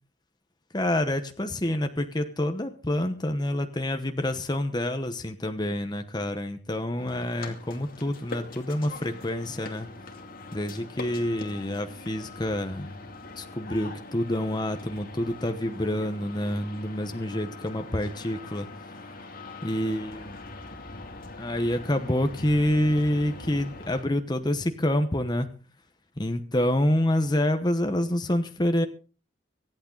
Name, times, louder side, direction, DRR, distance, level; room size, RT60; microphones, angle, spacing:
voice 1, 0.7-9.9 10.5-13.0 13.4-18.7 19.6-20.4 21.4-25.5 26.2-28.9, left 1 dB, 20° left, 7 dB, 1.0 m, -27 dB
sound 1, 7.0-24.0, left 2 dB, 45° left, 2.5 m, -42 dB
25.0 x 8.7 x 3.9 m, 0.37 s
head